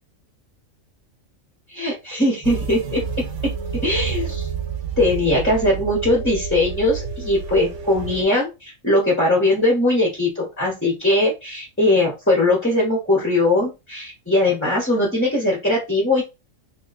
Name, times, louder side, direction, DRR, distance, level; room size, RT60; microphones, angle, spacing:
voice 1, 1.7-3.0 3.8-4.5 5.0-16.2, left 1 dB, 10° left, -3 dB, 0.9 m, -20 dB
sound 1, 2.4-8.2, right 6 dB, 65° right, 1.1 m, -29 dB
3.2 x 2.4 x 3.9 m, 0.25 s
omnidirectional pair, 1.4 m